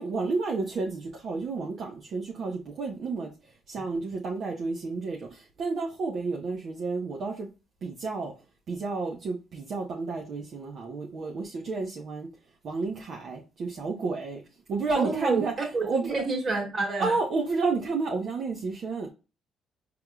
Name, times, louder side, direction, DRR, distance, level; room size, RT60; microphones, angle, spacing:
voice 1, 0.0-3.3 3.7-7.5 7.8-8.3 8.7-12.3 12.6-14.4 14.7-15.5 15.8-16.2 17.0-19.1, right 4 dB, 60° right, 0.9 m, -31 dB
voice 2, 15.0-15.4 15.7-17.1, right 3 dB, 40° right, 2.1 m, -28 dB
4.7 x 3.5 x 2.3 m
cardioid pair, 90°, 0 cm